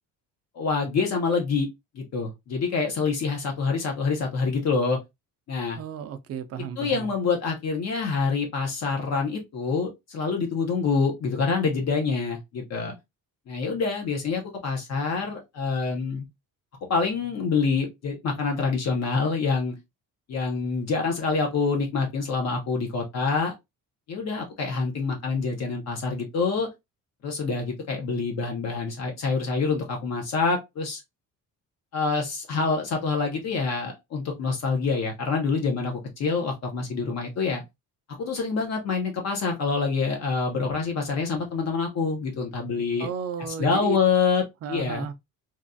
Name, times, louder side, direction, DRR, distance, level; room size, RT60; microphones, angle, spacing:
voice 1, 0.6-1.7 1.9-5.0 5.5-5.8 6.8-12.9 13.5-16.2 16.9-19.7 20.3-23.5 24.1-26.7 27.2-31.0 31.9-37.6 38.2-43.1 43.5-44.4 44.7-45.1, left 4 dB, 50° left, 0.8 m, -26 dB
voice 2, 5.8-7.1 43.0-44.0 44.6-45.1, right 7 dB, 45° right, 0.4 m, -33 dB
3.1 x 2.3 x 2.5 m
cardioid pair, 175°, 34 cm